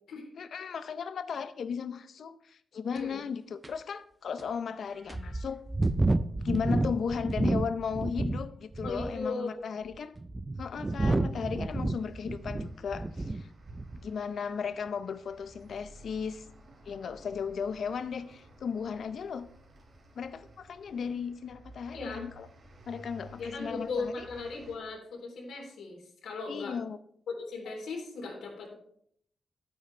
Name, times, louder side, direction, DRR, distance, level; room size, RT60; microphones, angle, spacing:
voice 1, 0.4-5.6 6.4-10.2 10.6-13.5 14.0-16.5 16.9-19.5 20.2-22.5 22.9-24.3 26.5-27.0, left 6 dB, 55° left, 0.6 m, -35 dB
voice 2, 2.9-3.3 8.8-9.9 21.9-22.2 23.4-26.8 27.3-28.7, left 3 dB, 85° left, 3.4 m, -38 dB
sound 1, 3.0-3.1 3.6-3.7 4.4-4.5 5.1-8.5 8.7-9.2 9.9-13.4 13.7-14.0, right 2 dB, 15° right, 0.4 m, -30 dB
sound 2, 11.3-24.8, right 1 dB, 45° right, 2.5 m, -54 dB
11.5 x 9.4 x 3.2 m
wide cardioid pair, 150°, 0 cm